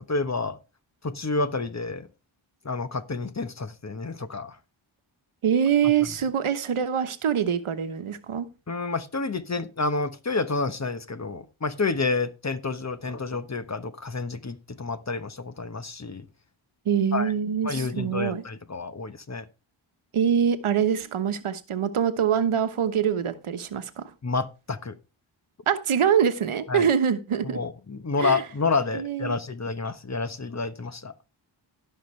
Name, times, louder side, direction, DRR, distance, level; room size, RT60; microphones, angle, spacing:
voice 1, 0.1-0.6 1.0-2.1 2.6-4.6 8.7-16.3 17.1-17.3 17.6-19.4 24.2-25.0 26.7-26.9 27.4-31.1, left 3 dB, 35° left, 1.1 m, -29 dB
voice 2, 5.4-8.5 16.8-18.4 20.1-24.1 25.7-27.6 28.2-28.4 28.9-29.4, right 8 dB, 80° right, 1.2 m, -24 dB
16.5 x 5.7 x 3.3 m
cardioid pair, 55°, 49 cm